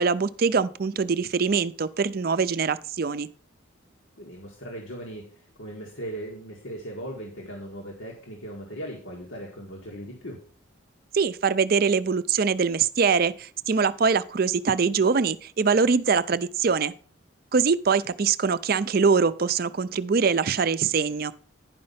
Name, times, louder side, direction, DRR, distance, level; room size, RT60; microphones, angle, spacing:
voice 1, 0.0-3.3 11.1-16.9 17.5-21.3, right 5 dB, 50° right, 14 dB, 0.5 m, -23 dB
voice 2, 4.2-10.4, right 1 dB, 85° left, -1 dB, 1.9 m, -38 dB
10.5 x 5.4 x 5.7 m, 0.42 s
head